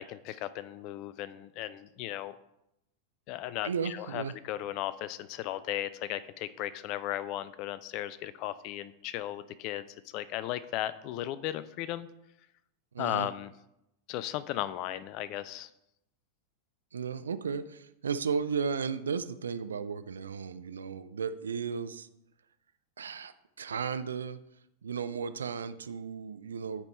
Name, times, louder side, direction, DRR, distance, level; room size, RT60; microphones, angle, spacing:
voice 1, 0.0-2.4 3.3-12.1 13.0-13.5 14.1-15.7, left 13 dB, 40° left, 15 dB, 0.3 m, -36 dB
voice 2, 3.6-4.3 12.9-13.3 16.9-22.1 23.0-24.4 24.8-26.8, right 6 dB, 70° right, 12 dB, 0.4 m, -34 dB
9.7 x 3.5 x 4.2 m, 0.84 s
figure-of-eight pair, 90°, 0 cm